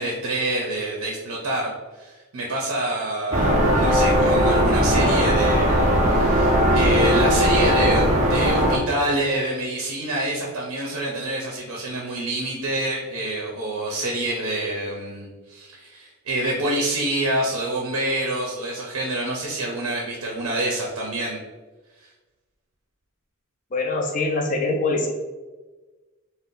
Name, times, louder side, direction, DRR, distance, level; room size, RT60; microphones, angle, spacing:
voice 1, 0.0-1.7 2.0-21.4, right 1 dB, 90° right, -1 dB, 0.5 m, -27 dB
sound 1, 3.3-8.8, equal, 35° right, 0.4 m, -18 dB
voice 2, 23.7-25.1, left 2 dB, 35° left, 3 dB, 0.4 m, -23 dB
2.6 x 2.1 x 3.7 m, 1.2 s
head